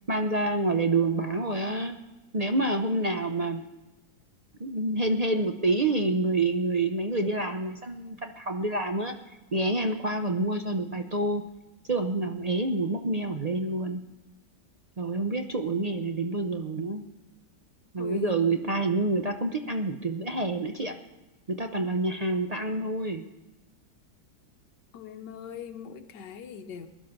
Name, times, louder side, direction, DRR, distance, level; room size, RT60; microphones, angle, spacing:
voice 1, 0.1-2.0 2.3-3.6 4.6-9.1 9.5-11.4 11.9-14.0 15.0-17.0 17.9-20.9 21.5-23.2, right 2 dB, 60° right, 4 dB, 0.4 m, -27 dB
voice 2, 18.0-18.4 24.9-26.9, left 7 dB, 75° left, 7 dB, 1.4 m, -40 dB
21.0 x 11.0 x 5.9 m, 1.1 s
omnidirectional pair, 1.9 m